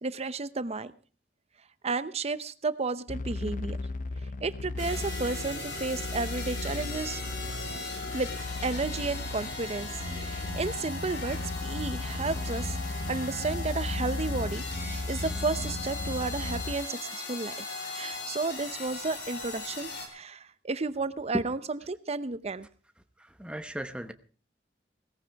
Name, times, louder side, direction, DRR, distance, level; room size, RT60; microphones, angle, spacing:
voice 1, 0.0-0.9 1.8-3.8 4.4-7.2 8.1-8.3 8.6-9.9 10.2-17.5 17.9-22.7, right 3 dB, 35° right, 14 dB, 0.7 m, -32 dB
sound 1, 3.1-16.8, left 2 dB, 45° left, 0.6 m, -36 dB
sound 2, 4.8-20.1, left 3 dB, 70° left, 4.1 m, -38 dB
sound 3, 10.0-16.6, equal, 85° right, 1.6 m, -41 dB
voice 2, 23.2-24.1, right 1 dB, 5° right, 8 dB, 0.9 m, -35 dB
17.5 x 15.0 x 3.5 m, 0.39 s
head